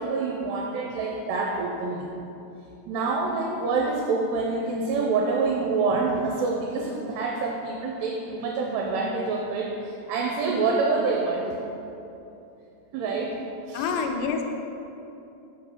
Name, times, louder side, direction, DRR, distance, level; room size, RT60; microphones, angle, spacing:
voice 1, 0.0-2.1 2.9-11.6 12.9-13.4 13.6-14.0, right 4 dB, 80° right, -1 dB, 2.6 m, -27 dB
voice 2, 13.7-14.4, left 5 dB, 85° left, 4 dB, 2.8 m, -27 dB
6.1 x 5.0 x 5.5 m, 2.9 s
omnidirectional pair, 5.0 m